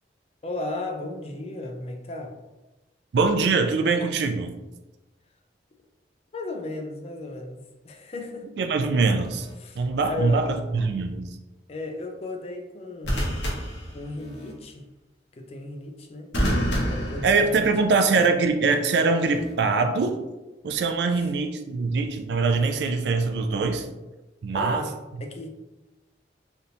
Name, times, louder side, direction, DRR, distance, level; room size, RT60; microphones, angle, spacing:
voice 1, 0.4-2.4 6.3-8.5 9.6-10.5 11.7-13.3 13.9-14.9 15.3-16.3 16.9-18.4 21.1-21.3 24.5-24.9 25.2-25.5, left 2 dB, 35° left, 3 dB, 0.4 m, -35 dB
voice 2, 3.1-4.5 8.6-9.5 9.8-11.2 17.2-20.2 20.6-23.9 24.4-24.9, right 4 dB, 65° right, 6 dB, 0.4 m, -23 dB
sound 1, 9.2-9.5 13.0-14.5 16.3-18.0 19.2-19.5, equal, 75° left, 0.9 m, -28 dB
3.3 x 2.6 x 2.7 m, 1.1 s
head